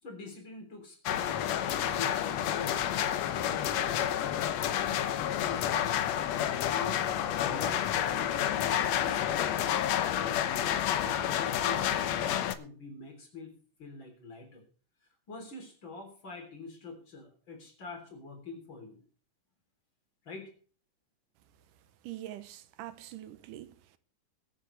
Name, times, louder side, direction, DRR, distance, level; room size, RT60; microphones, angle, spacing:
voice 1, 0.0-13.5 13.8-14.6 15.3-19.0 20.2-20.5, left 3 dB, 35° left, 4.1 m, -46 dB
sound 1, 1.1-12.5, left 10 dB, 70° left, 1.8 m, -29 dB
voice 2, 22.0-24.0, right 13 dB, 80° right, 2.4 m, -44 dB
22.5 x 8.7 x 3.3 m
omnidirectional pair, 3.8 m